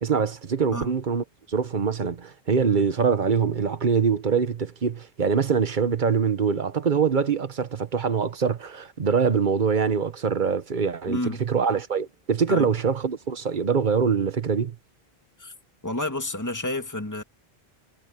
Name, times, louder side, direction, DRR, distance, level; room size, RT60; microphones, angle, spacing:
voice 1, 0.0-14.7, right 6 dB, 50° right, 1.3 m, -24 dB
voice 2, 11.1-11.5 12.5-12.7 15.4-15.5 15.8-17.2, left 1 dB, 15° left, 2.2 m, -30 dB
omnidirectional pair, 1.0 m